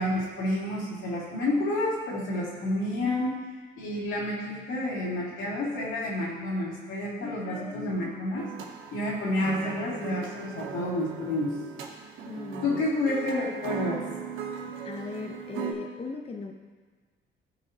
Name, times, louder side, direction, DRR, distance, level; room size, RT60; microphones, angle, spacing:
voice 1, 0.0-3.3 3.8-8.5 8.9-11.5 12.6-14.0, left 1 dB, 85° left, -6 dB, 2.7 m, -29 dB
voice 2, 7.2-8.1 12.0-12.8 14.8-16.5, left 4 dB, 30° left, 2 dB, 0.8 m, -38 dB
sound 1, 8.4-15.7, right 7 dB, 85° right, 1.1 m, -38 dB
15.5 x 5.2 x 2.9 m, 1.5 s
cardioid pair, 90°, 20 cm